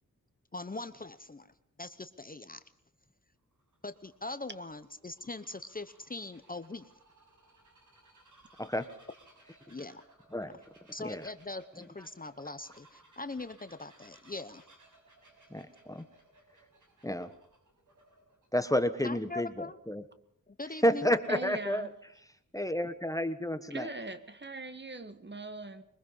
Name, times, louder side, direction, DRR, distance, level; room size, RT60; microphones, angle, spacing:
voice 1, 0.5-2.6 3.8-6.9 9.7-10.0 10.9-14.7 19.0-19.8 20.5-21.1, left 2 dB, 25° left, 1.0 m, -41 dB
Bird vocalization bird call bird song, 3.4-18.5, right 2 dB, 65° right, 6.5 m, -62 dB
voice 2, 15.5-16.0 17.0-17.3 18.5-19.5 19.9-20.0 20.8-21.9 22.5-23.9, equal, 10° left, 1.2 m, -30 dB
voice 3, 21.3-21.9 23.7-25.8, right 2 dB, 35° right, 1.7 m, -41 dB
23.0 x 21.0 x 5.6 m
wide cardioid pair, 80°, 33 cm